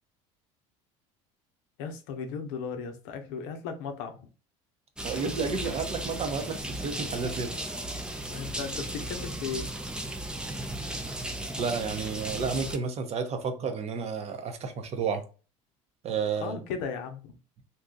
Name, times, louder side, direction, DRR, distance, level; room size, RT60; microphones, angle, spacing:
voice 1, 1.8-4.2 8.3-9.7 16.4-17.3, left 6 dB, 80° left, 0.6 m, -36 dB
sound 1, 5.0-12.8, right 1 dB, 5° right, 0.4 m, -35 dB
voice 2, 5.0-7.7 11.6-15.2 16.0-16.6, right 5 dB, 40° right, 0.7 m, -31 dB
2.6 x 2.3 x 3.8 m
supercardioid pair, 95°, 16 cm